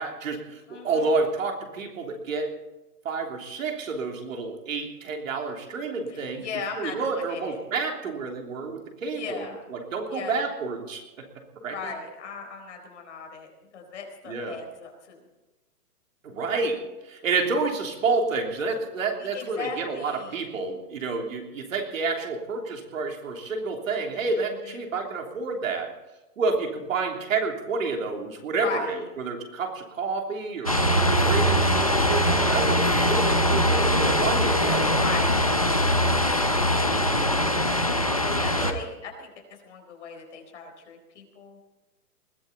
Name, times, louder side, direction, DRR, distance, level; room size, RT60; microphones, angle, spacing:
voice 1, 0.0-2.5 3.0-6.5 6.7-11.0 11.6-11.9 14.2-14.6 16.2-25.9 26.4-30.8 31.2-34.8 36.6-36.8 38.6-38.8, right 4 dB, 55° right, 2 dB, 3.3 m, -29 dB
voice 2, 0.7-1.1 6.1-7.6 9.1-9.6 10.1-10.4 11.7-15.2 19.2-20.5 24.1-24.8 28.6-29.0 34.9-35.5 36.1-37.3 38.2-41.6, left 5 dB, 45° left, 2 dB, 4.2 m, -38 dB
sound 1, 30.7-38.7, equal, 25° left, 0.5 m, -22 dB
21.0 x 16.0 x 4.1 m, 1.1 s
hypercardioid pair, 175°, 47 cm